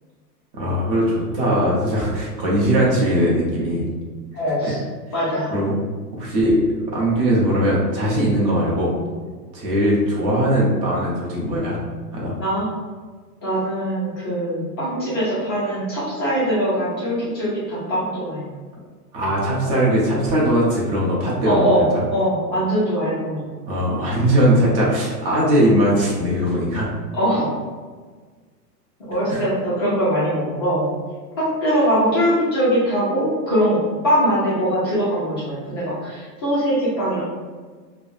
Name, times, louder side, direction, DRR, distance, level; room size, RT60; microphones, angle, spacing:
voice 1, 0.5-3.9 4.6-4.7 5.5-5.7 6.1-8.9 9.5-11.8 12.1-12.3 19.1-22.0 23.7-26.9 29.3-29.4, equal, 35° right, -5 dB, 0.8 m, -20 dB
voice 2, 4.3-4.8 5.1-5.5 12.4-12.7 13.4-18.4 21.5-21.8 22.1-23.5 27.1-27.5 29.1-30.9 31.4-37.2, equal, 20° left, -10 dB, 0.3 m, -21 dB
3.4 x 2.1 x 2.4 m, 1.5 s
hypercardioid pair, 140°, 50 cm